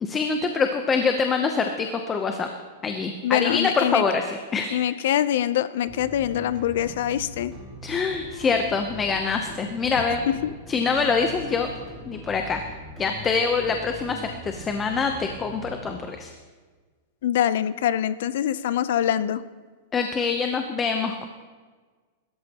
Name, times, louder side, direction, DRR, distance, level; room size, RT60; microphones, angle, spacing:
voice 1, 0.0-2.5 2.8-4.8 7.8-10.2 10.7-11.7 12.1-12.6 13.0-16.3 19.9-21.2, left 5 dB, 15° left, 5 dB, 0.7 m, -25 dB
voice 2, 3.2-4.0 4.7-7.5 10.4-10.5 17.2-19.4, left 11 dB, 60° left, 14 dB, 0.6 m, -24 dB
sound 1, 5.9-15.9, right 1 dB, 15° right, 2.9 m, -41 dB
24.5 x 13.0 x 2.9 m, 1.4 s
supercardioid pair, 170°, 0 cm